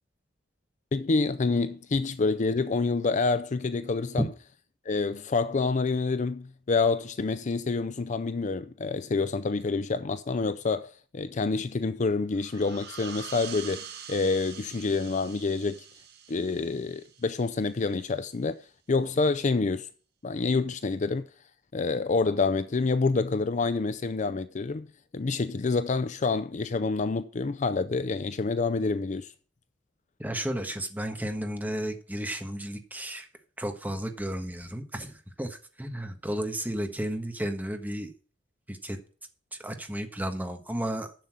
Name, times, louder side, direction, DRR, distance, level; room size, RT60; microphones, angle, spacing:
voice 1, 0.9-4.2 4.9-15.8 16.3-18.6 18.9-19.9 20.2-21.3 21.7-24.9 25.1-29.3, left 4 dB, 40° left, 0.5 m, -27 dB
sound 1, 12.3-17.7, right 7 dB, 55° right, 1.6 m, -44 dB
voice 2, 30.2-33.3 33.6-38.1 38.7-39.0 39.5-41.1, right 1 dB, 10° right, 1.4 m, -33 dB
7.6 x 7.0 x 7.5 m
head